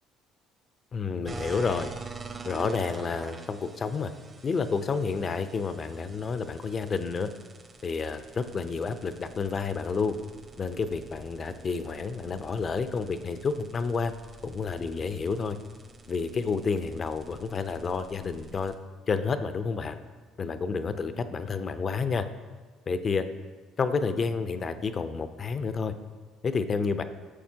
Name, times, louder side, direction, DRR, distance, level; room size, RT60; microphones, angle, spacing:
voice 1, 0.9-1.9 2.4-4.1 4.4-7.3 7.8-10.2 10.6-14.1 14.4-15.6 16.1-18.7 19.1-20.0 20.4-22.3 22.9-23.2 23.8-25.9 26.4-27.0, left 5 dB, 45° left, 11 dB, 0.6 m, -30 dB
sound 1, 1.2-18.8, right 4 dB, 40° right, 1.0 m, -47 dB
11.5 x 7.2 x 2.8 m, 1.4 s
hypercardioid pair, 60°, 0 cm